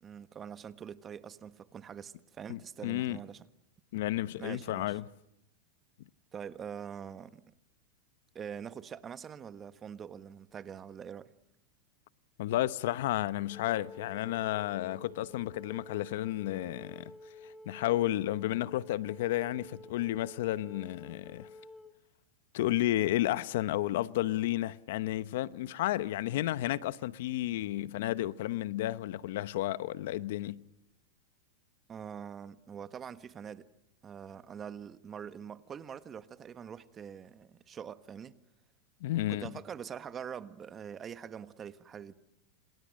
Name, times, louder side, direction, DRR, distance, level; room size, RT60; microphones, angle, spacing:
voice 1, 0.0-3.5 4.4-5.0 6.3-7.4 8.3-11.3 31.9-33.7 34.0-38.4 39.3-42.1, right 8 dB, 25° right, 1.4 m, -44 dB
voice 2, 2.5-3.2 3.9-5.0 12.4-17.1 17.7-21.5 22.5-30.6 39.0-39.5, left 15 dB, 70° left, 1.0 m, -32 dB
Wind instrument woodwind instrument, 13.5-21.9, left 1 dB, 10° left, 1.5 m, -51 dB
29.5 x 27.5 x 6.5 m
hypercardioid pair, 125°, 0 cm